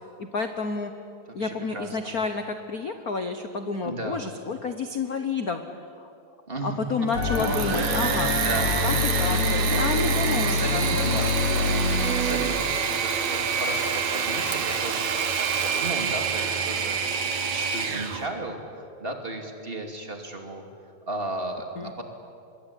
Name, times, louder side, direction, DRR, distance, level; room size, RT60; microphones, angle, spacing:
voice 1, 0.2-0.9 1.3-5.6 6.0-6.1 6.6-8.4 8.8-11.2 11.5-11.9 21.8-21.9, left 4 dB, 80° left, 7 dB, 0.8 m, -30 dB
voice 2, 1.3-2.1 3.8-4.2 6.5-7.1 8.4-8.7 10.5-11.7 12.0-20.6 21.1-22.0, right 2 dB, 20° right, 4 dB, 2.5 m, -35 dB
sound 1, 7.1-12.5, left 2 dB, 55° left, 6.4 m, -26 dB
Engine / Mechanisms, 7.1-18.3, right 6 dB, 65° right, 3.0 m, -27 dB
25.5 x 21.5 x 9.9 m, 2.6 s
omnidirectional pair, 3.5 m